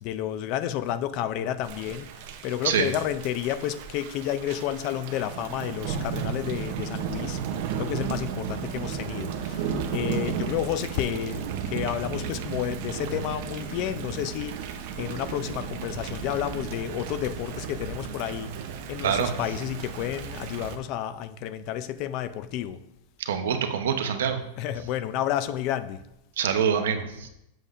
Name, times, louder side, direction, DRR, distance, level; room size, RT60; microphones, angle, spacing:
voice 1, 0.0-2.1 2.4-7.4 7.8-14.7 15.0-18.5 18.9-22.8 24.6-26.0, left 11 dB, 35° left, 0.3 m, -31 dB
Thunder / Rain, 1.6-20.8, right 7 dB, 50° right, 0.6 m, -34 dB
voice 2, 23.3-24.4 26.4-27.3, right 7 dB, 85° right, 0.8 m, -25 dB
7.6 x 6.5 x 2.5 m
supercardioid pair, 170°, 0 cm